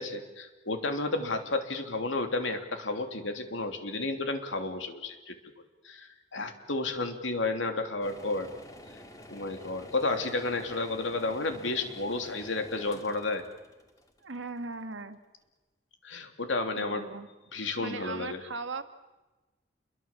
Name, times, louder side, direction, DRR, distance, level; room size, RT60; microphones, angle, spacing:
voice 1, 0.0-5.4 5.8-8.5 9.3-13.4 16.0-17.1 17.5-18.4, left 2 dB, 90° left, 6 dB, 3.1 m, -32 dB
sound 1, 8.0-14.9, left 1 dB, 20° left, 2.3 m, -49 dB
voice 2, 14.2-15.2 16.8-17.3 17.8-18.8, right 3 dB, 90° right, 8 dB, 1.9 m, -38 dB
28.5 x 22.5 x 7.4 m, 1.1 s
head